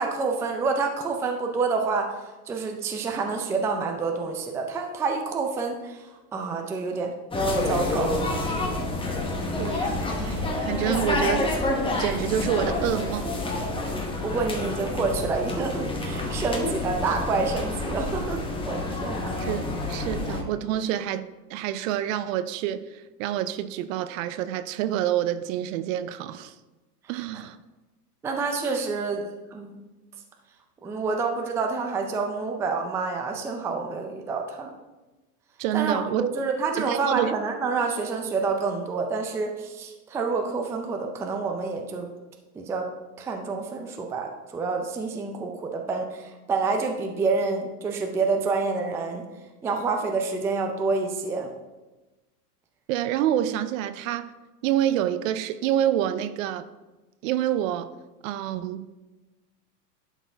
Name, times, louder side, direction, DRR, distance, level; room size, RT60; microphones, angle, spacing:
voice 1, 0.0-2.1 2.5-6.1 6.3-7.1 7.7-8.2 14.2-19.3 28.2-29.8 30.8-34.7 35.7-42.1 42.6-42.9 43.2-49.3 49.6-51.5, right 4 dB, 5° right, 0.3 m, -28 dB
sound 1, 7.3-20.4, left 2 dB, 10° left, 1.0 m, -28 dB
voice 2, 9.6-11.5 12.0-13.4 19.4-19.6 19.9-26.5 27.1-27.6 35.6-36.3 36.8-37.3 52.9-54.3 54.6-56.7 57.2-57.9 58.2-59.0, right 11 dB, 60° right, 0.6 m, -27 dB
11.5 x 4.1 x 3.4 m
hypercardioid pair, 110°, 47 cm